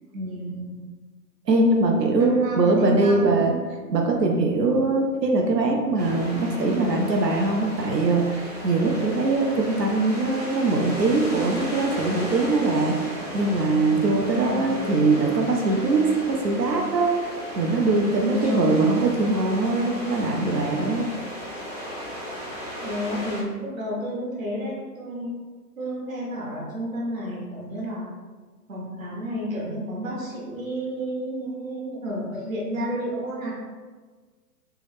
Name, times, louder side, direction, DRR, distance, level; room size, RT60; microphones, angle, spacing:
voice 1, 0.2-0.7 2.2-3.5 14.2-14.9 18.2-18.7 22.8-25.3 25.8-28.1 28.7-33.5, equal, 55° right, -4 dB, 1.0 m, -31 dB
voice 2, 1.5-3.6 3.9-21.1, right 3 dB, 90° right, 2 dB, 0.6 m, -22 dB
sound 1, 6.0-23.4, equal, 30° right, 0.4 m, -35 dB
3.4 x 2.1 x 3.2 m, 1.4 s
figure-of-eight pair, 130°, 48 cm